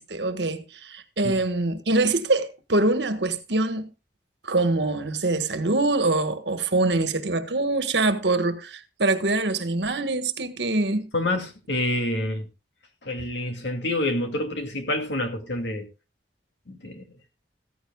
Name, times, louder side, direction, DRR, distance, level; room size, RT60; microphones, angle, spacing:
voice 1, 0.0-3.9 4.4-11.0, right 2 dB, 75° right, 1.5 m, -24 dB
voice 2, 11.1-12.5 13.0-15.9 16.7-17.0, left 1 dB, 85° left, 2.4 m, -27 dB
15.0 x 14.5 x 2.3 m
head